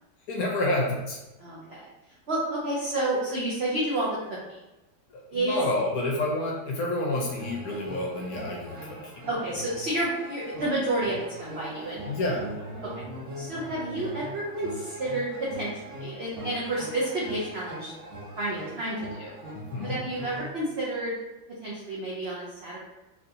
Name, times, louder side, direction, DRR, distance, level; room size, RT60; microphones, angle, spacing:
voice 1, 0.3-1.2 5.3-8.8 9.0-9.1 12.1-12.4 19.5-20.0, left 2 dB, 70° left, -2 dB, 1.0 m, -28 dB
voice 2, 1.4-1.8 2.3-4.6 5.3-5.6 9.3-12.1 12.8-13.0 13.4-17.9 18.4-19.4 19.8-21.1 21.6-22.8, right 1 dB, 70° right, -6 dB, 0.6 m, -30 dB
sound 1, 7.1-20.5, equal, 55° right, 1.1 m, -41 dB
3.3 x 2.6 x 2.7 m, 1.0 s
omnidirectional pair, 1.9 m